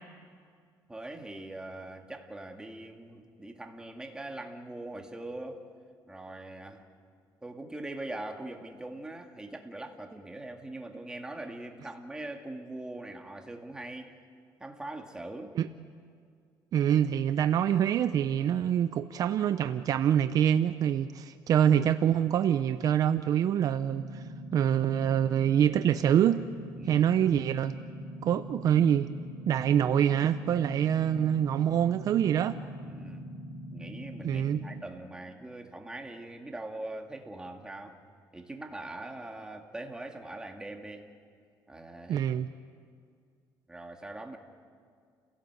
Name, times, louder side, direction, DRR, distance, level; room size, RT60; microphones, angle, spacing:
voice 1, 0.9-5.6 6.1-6.9 7.4-14.1 14.6-15.6 26.8-27.0 32.8-33.2 33.7-38.0 38.3-41.1 41.7-42.3 43.7-44.4, right 2 dB, 10° right, 3 dB, 2.1 m, -42 dB
voice 2, 16.7-24.2 24.5-26.4 26.8-27.8 28.2-29.1 29.5-32.6 34.2-34.6 42.1-42.5, right 9 dB, 55° right, 11 dB, 0.6 m, -25 dB
sound 1, 23.9-34.8, equal, 40° left, 5.7 m, -42 dB
29.5 x 17.0 x 8.0 m, 2.1 s
cardioid pair, 130°, 8 cm